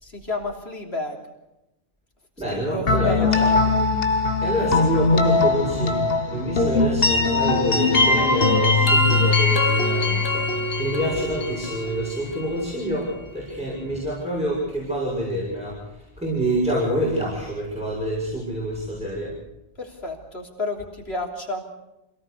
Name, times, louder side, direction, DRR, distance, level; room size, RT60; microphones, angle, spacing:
voice 1, 0.0-1.2 2.5-3.7 19.8-21.6, left 2 dB, 85° left, 1 dB, 3.6 m, -31 dB
voice 2, 2.4-3.3 4.4-19.3, right 1 dB, 5° right, -6 dB, 6.8 m, -27 dB
sound 1, 2.9-12.6, left 3 dB, 65° left, 1.7 m, -21 dB
26.5 x 18.0 x 6.7 m, 0.94 s
omnidirectional pair, 1.1 m